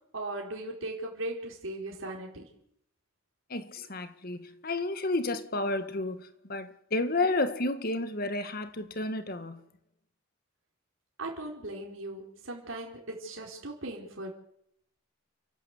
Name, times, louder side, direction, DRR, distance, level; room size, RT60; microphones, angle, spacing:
voice 1, 0.1-2.5 11.2-14.3, right 2 dB, 75° right, 4.4 m, -38 dB
voice 2, 3.5-9.6, left 2 dB, 50° left, 1.7 m, -31 dB
29.5 x 12.0 x 8.2 m
head